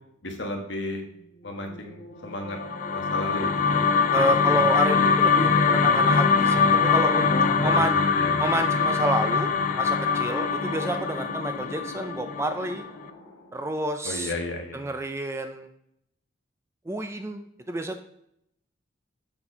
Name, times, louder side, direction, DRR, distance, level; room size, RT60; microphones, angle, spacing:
voice 1, 0.2-1.0 1.4-2.6 2.9-3.9 7.3-8.4 14.0-14.9, left 1 dB, 60° left, 3 dB, 1.3 m, -34 dB
sound 1, 1.1-13.7, left 2 dB, 85° left, 1.2 m, -38 dB
sound 2, 2.5-12.8, left 5 dB, 40° left, 0.5 m, -22 dB
voice 2, 4.1-7.3 7.6-7.9 8.4-12.8 13.5-14.3 14.7-15.7 16.9-18.0, right 1 dB, 15° right, 7 dB, 0.4 m, -29 dB
7.1 x 4.2 x 4.9 m, 0.75 s
head